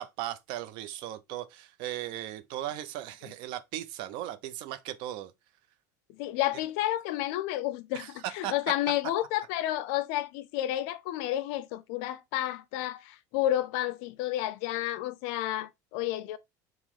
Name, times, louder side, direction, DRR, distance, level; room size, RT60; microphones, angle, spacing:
voice 1, 0.0-5.3 7.9-8.5, right 13 dB, 60° right, 0.5 m, -37 dB
voice 2, 6.2-16.4, left 14 dB, 70° left, 0.5 m, -31 dB
3.1 x 3.0 x 3.6 m
supercardioid pair, 125°, 9 cm